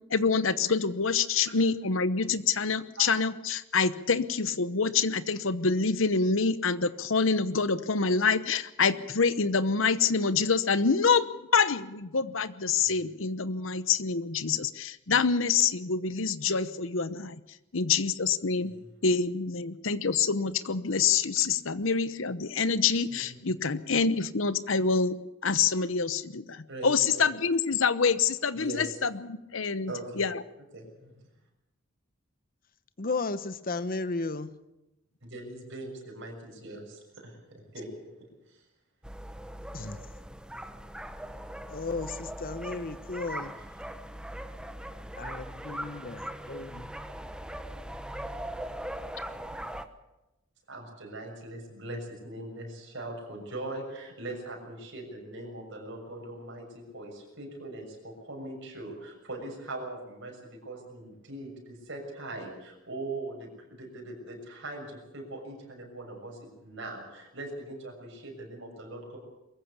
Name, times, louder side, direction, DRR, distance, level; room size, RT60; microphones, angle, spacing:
voice 1, 0.1-17.4 17.7-18.7 19.0-25.2 25.4-30.4, left 5 dB, 70° left, 14 dB, 0.9 m, -26 dB
voice 2, 23.1-23.4 26.7-27.2 28.5-28.9 29.9-30.2 30.7-31.1 35.2-37.9 38.5-38.6 50.7-69.2, right 2 dB, 60° right, 1 dB, 6.6 m, -41 dB
voice 3, 33.0-34.5 39.7-40.0 41.7-43.6 45.2-46.9, left 3 dB, 45° left, 13 dB, 1.0 m, -34 dB
sound 1, 39.0-49.9, right 1 dB, 5° right, 1.0 m, -40 dB
22.5 x 15.0 x 8.5 m, 0.97 s
head